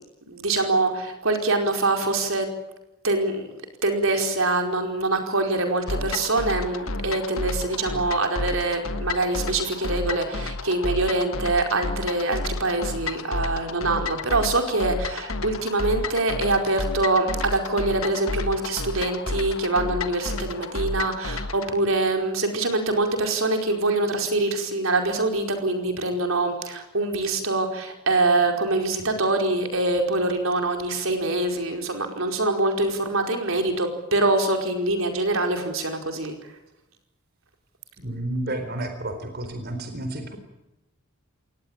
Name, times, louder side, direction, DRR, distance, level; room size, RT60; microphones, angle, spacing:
voice 1, 0.3-2.5 3.0-3.5 3.8-36.4, right 2 dB, 75° right, 4 dB, 4.9 m, -24 dB
sound 1, 5.9-21.7, left 3 dB, 75° left, 1.5 m, -31 dB
voice 2, 38.0-40.4, right 1 dB, 50° right, 7 dB, 4.2 m, -31 dB
27.0 x 19.5 x 8.9 m, 0.93 s
head